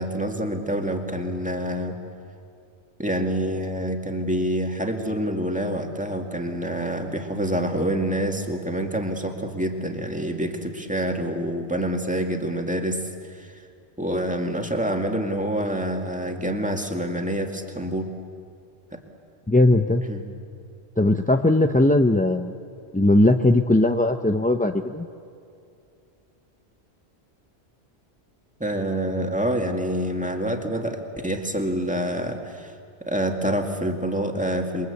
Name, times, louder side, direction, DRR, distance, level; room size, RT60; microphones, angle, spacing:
voice 1, 0.0-2.0 3.0-13.5 14.0-18.1 18.9-19.0 20.1-20.2 28.6-32.7 33.0-34.9, equal, 5° right, 3 dB, 2.1 m, -27 dB
voice 2, 19.5-20.0 21.0-22.5 22.9-25.1, left 1 dB, 10° left, 5 dB, 0.4 m, -19 dB
28.0 x 22.5 x 8.2 m, 2.5 s
omnidirectional pair, 1.1 m